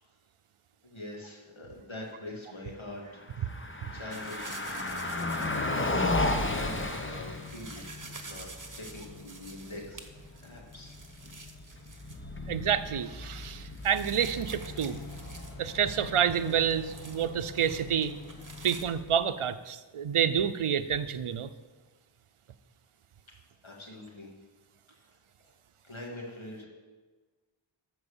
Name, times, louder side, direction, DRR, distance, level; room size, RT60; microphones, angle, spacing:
voice 1, 0.8-3.2 3.8-4.5 5.0-7.8 8.2-10.1 10.3-10.9 11.6-12.5 23.6-24.3 24.9-25.5 25.8-26.7, left 1 dB, 65° left, -2 dB, 2.4 m, -44 dB
Car passing by, 3.1-19.2, left 2 dB, 25° left, 0.9 m, -36 dB
sound 1, 4.1-18.8, right 3 dB, 40° right, 1.2 m, -49 dB
voice 2, 12.5-15.0 15.6-18.1 18.6-21.5, right 8 dB, 80° right, 12 dB, 0.7 m, -28 dB
sound 2, 14.1-19.9, left 4 dB, 45° left, 1.5 m, -51 dB
13.0 x 4.7 x 7.2 m, 1.3 s
wide cardioid pair, 40°, 50 cm